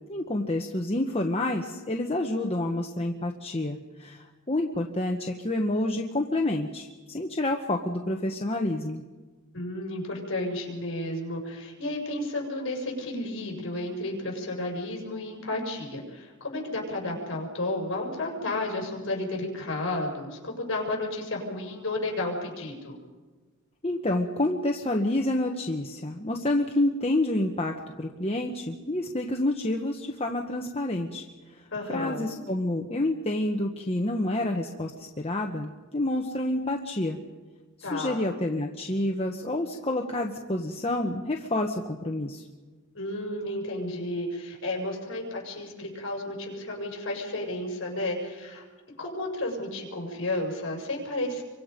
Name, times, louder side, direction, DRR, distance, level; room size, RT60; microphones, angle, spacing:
voice 1, 0.1-9.0 23.8-31.2 31.9-37.2 37.8-42.4, left 1 dB, 25° left, 2 dB, 1.2 m, -28 dB
voice 2, 9.5-23.0 31.7-32.2 37.8-38.2 42.9-48.6 49.0-51.4, left 1 dB, 60° left, 0 dB, 6.1 m, -32 dB
28.5 x 24.5 x 5.3 m, 1.3 s
head